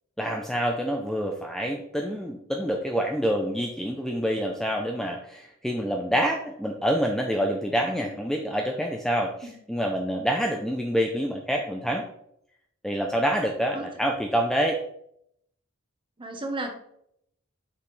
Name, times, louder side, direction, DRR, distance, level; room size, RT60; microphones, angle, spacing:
voice 1, 0.2-12.0 12.8-14.8, equal, ahead, 1 dB, 0.5 m, -27 dB
voice 2, 16.2-16.9, right 2 dB, 25° right, 3 dB, 1.0 m, -34 dB
6.7 x 5.5 x 3.2 m, 0.73 s
head